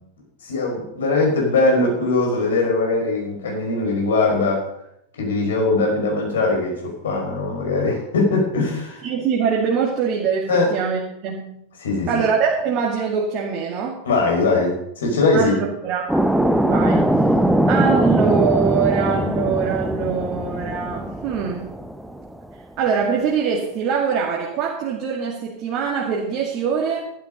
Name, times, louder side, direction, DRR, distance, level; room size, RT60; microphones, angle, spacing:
voice 1, 0.4-4.7 5.2-6.7 7.0-9.0 10.5-10.7 11.8-12.1 14.0-15.6, left 3 dB, 60° left, 0 dB, 5.5 m, -20 dB
voice 2, 9.0-11.5 12.1-14.0 15.3-16.1 16.6-17.0 17.7-21.7 22.8-27.0, right 6 dB, 40° right, -2 dB, 2.2 m, -23 dB
sound 1, 16.1-22.4, right 1 dB, 5° right, 0.7 m, -21 dB
12.5 x 11.5 x 5.2 m, 0.79 s
figure-of-eight pair, 90°, 0 cm